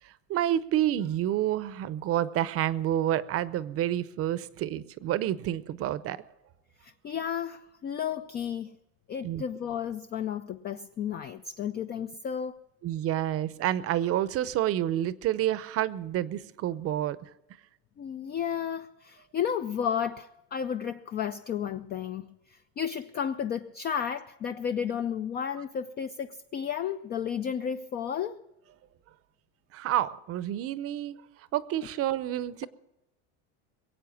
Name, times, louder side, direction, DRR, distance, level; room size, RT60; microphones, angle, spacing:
voice 1, 0.0-6.2 9.2-9.4 12.8-17.2 29.7-31.2 31.5-32.7, right 12 dB, 40° right, 0.7 m, -29 dB
voice 2, 6.8-8.8 9.1-12.6 18.0-28.4, left 8 dB, 30° left, 0.4 m, -33 dB
22.0 x 8.4 x 7.2 m
cardioid pair, 140°, 36 cm